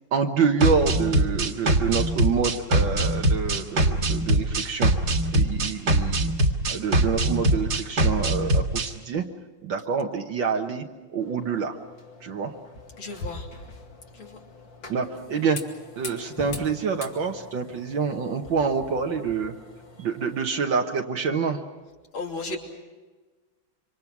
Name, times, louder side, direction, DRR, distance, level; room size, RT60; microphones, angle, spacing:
voice 1, 0.1-4.9 5.3-6.3 6.6-9.3 9.6-10.9 11.1-11.8 12.2-12.5 14.9-15.6 16.0-19.6 20.0-21.6, right 5 dB, 70° right, 2 dB, 1.9 m, -27 dB
sound 1, 0.6-8.9, right 1 dB, 50° right, 2.3 m, -22 dB
sound 2, 11.2-20.5, left 3 dB, 70° left, 3.1 m, -43 dB
voice 2, 13.0-13.5 14.1-14.4 22.1-22.6, left 3 dB, 85° left, 1 dB, 3.8 m, -34 dB
27.0 x 25.5 x 6.0 m, 1.3 s
omnidirectional pair, 2.2 m